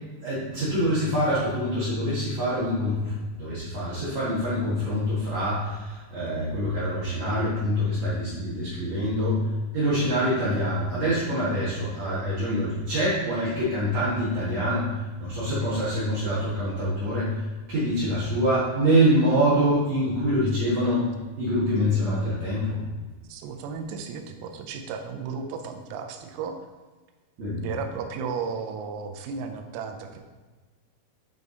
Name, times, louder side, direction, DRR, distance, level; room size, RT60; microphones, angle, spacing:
voice 1, 0.2-3.0 3.4-9.5 9.7-14.9 15.2-17.4 17.7-21.1 21.4-22.8 27.4-27.6, equal, 60° right, -10 dB, 1.9 m, -25 dB
voice 2, 23.3-26.6 27.6-30.2, right 5 dB, 85° right, 5 dB, 3.4 m, -34 dB
9.9 x 3.5 x 4.0 m, 1.3 s
omnidirectional pair, 5.9 m